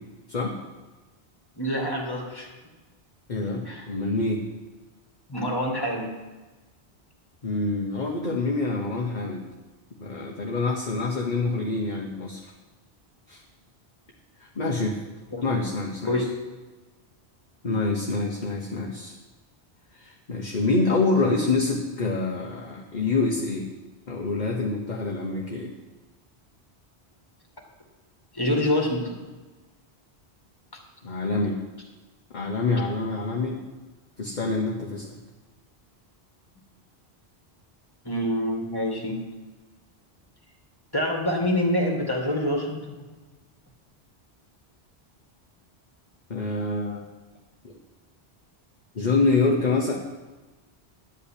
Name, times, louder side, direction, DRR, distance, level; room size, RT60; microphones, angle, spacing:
voice 1, 1.6-2.5 3.7-3.9 5.3-6.1 15.3-15.4 16.1-16.3 28.3-29.2 38.0-39.2 40.9-42.9, left 1 dB, 20° left, 0 dB, 2.2 m, -26 dB
voice 2, 3.3-4.4 7.4-9.5 10.0-12.5 13.3-13.4 14.4-15.0 15.4-16.2 17.6-19.1 19.9-23.7 24.1-25.7 31.0-31.6 32.3-33.6 34.2-35.1 46.3-47.0 47.6-47.7 48.9-50.0, left 3 dB, 45° left, 0 dB, 1.1 m, -26 dB
11.0 x 5.4 x 8.5 m, 1.2 s
omnidirectional pair, 1.1 m